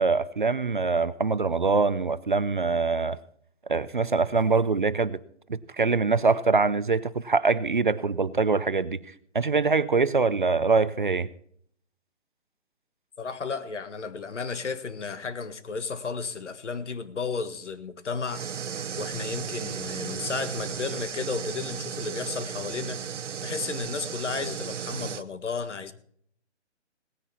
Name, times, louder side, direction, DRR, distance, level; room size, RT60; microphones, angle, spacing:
voice 1, 0.0-3.2 3.7-5.2 5.5-9.0 9.3-11.3, right 4 dB, 45° right, 0.5 m, -24 dB
voice 2, 13.2-18.4 19.0-23.0 23.4-25.9, left 5 dB, 75° left, 1.7 m, -33 dB
sound 1, 18.3-25.2, right 7 dB, 80° right, 1.0 m, -35 dB
18.0 x 10.0 x 4.3 m
hypercardioid pair, 180°, 36 cm